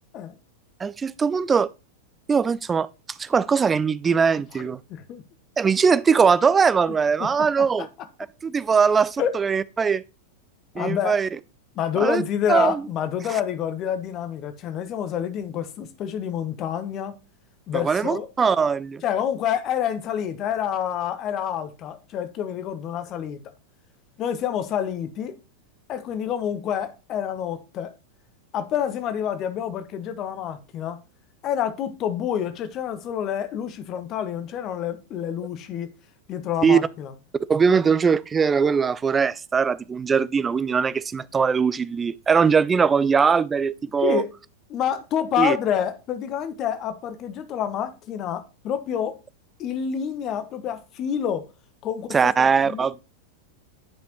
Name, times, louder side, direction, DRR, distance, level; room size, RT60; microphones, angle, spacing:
voice 1, 0.8-1.7 2.3-2.9 3.2-4.8 5.6-7.9 8.4-10.0 10.8-11.3 12.0-12.2 12.5-12.8 17.7-19.0 36.6-36.8 37.5-44.2 45.4-45.6 52.1-53.0, right 6 dB, 15° right, 0.3 m, -21 dB
voice 2, 4.9-5.2 7.2-7.3 7.6-7.7 9.2-9.3 10.7-11.2 11.7-17.1 17.7-18.3 19.0-23.4 24.2-25.3 25.9-27.9 28.5-31.0 31.4-35.9 36.3-37.1 44.0-44.3 44.7-49.2 49.6-51.5 51.8-52.3 52.6-52.9, left 9 dB, 35° left, 0.9 m, -28 dB
9.3 x 5.1 x 3.0 m
figure-of-eight pair, 90°, 0 cm